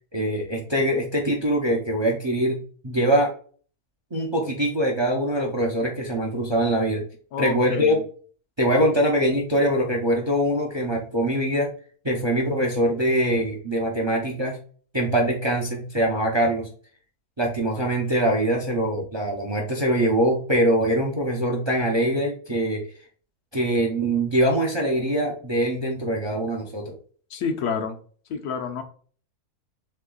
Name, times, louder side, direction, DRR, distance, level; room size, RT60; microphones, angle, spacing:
voice 1, 0.1-3.3 4.1-7.0 7.4-8.0 8.6-11.7 12.0-14.6 14.9-16.7 17.4-22.8 23.5-26.9, right 1 dB, 35° right, 1 dB, 0.4 m, -23 dB
voice 2, 7.3-8.0 27.3-28.0 28.3-28.8, left 5 dB, 80° left, 5 dB, 1.3 m, -28 dB
3.4 x 3.3 x 3.7 m, 0.44 s
omnidirectional pair, 1.6 m